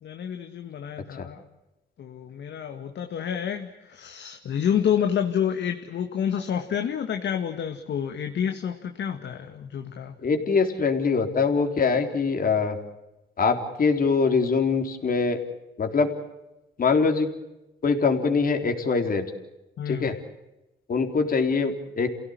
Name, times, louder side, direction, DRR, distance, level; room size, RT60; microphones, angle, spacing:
voice 1, 0.0-1.4 2.0-10.2 19.8-20.2, left 8 dB, 65° left, 5 dB, 1.9 m, -29 dB
voice 2, 10.2-12.8 13.4-15.4 15.8-16.1 16.8-17.3 17.8-19.3 19.9-20.2 20.9-22.1, left 4 dB, 45° left, 5 dB, 3.8 m, -23 dB
29.0 x 17.0 x 9.6 m, 0.97 s
cardioid pair, 90°, 20 cm